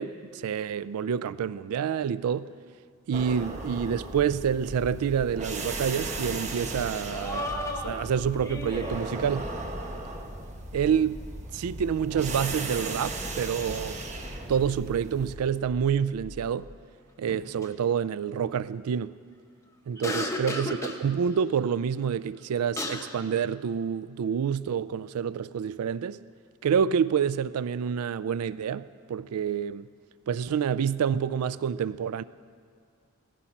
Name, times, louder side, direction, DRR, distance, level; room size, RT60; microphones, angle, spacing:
voice 1, 0.0-2.5 3.1-9.5 10.7-11.2 11.5-14.0 14.5-16.7 17.2-19.2 19.9-26.2 26.6-29.9 30.3-32.2, right 7 dB, 80° right, 0.4 m, -28 dB
sound 1, 3.1-15.4, right 2 dB, 30° right, 1.3 m, -37 dB
sound 2, 5.6-5.8 6.1-6.2 7.1-9.1 12.6-14.2 14.7-15.5 17.3-17.7 20.0-21.0 22.4-22.5 22.8-23.1, left 2 dB, 15° left, 1.0 m, -35 dB
sound 3, 7.1-16.8, left 1 dB, 80° left, 1.7 m, -46 dB
17.0 x 14.0 x 5.9 m
head